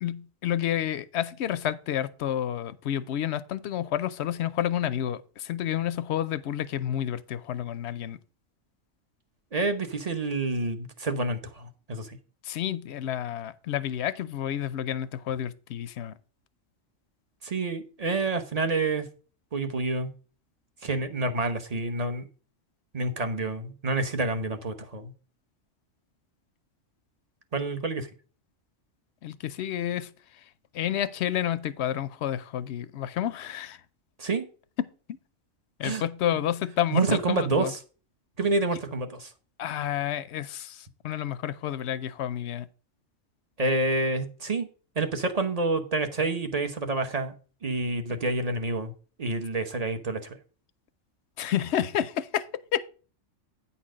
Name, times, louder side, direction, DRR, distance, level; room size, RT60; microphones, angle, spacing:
voice 1, 0.0-8.2 12.4-16.2 29.2-30.1 30.7-33.8 34.8-35.2 35.8-37.7 39.6-42.7 51.4-52.8, left 11 dB, 65° left, 0.8 m, -30 dB
voice 2, 9.5-12.2 17.4-19.1 19.5-20.1 20.8-22.3 22.9-25.1 27.5-28.1 34.2-34.5 35.8-36.0 36.9-37.8 38.4-39.3 43.6-44.7 45.0-47.3 47.6-48.9 49.2-50.4, right 3 dB, 35° right, 0.8 m, -28 dB
9.2 x 4.3 x 6.2 m
omnidirectional pair, 1.3 m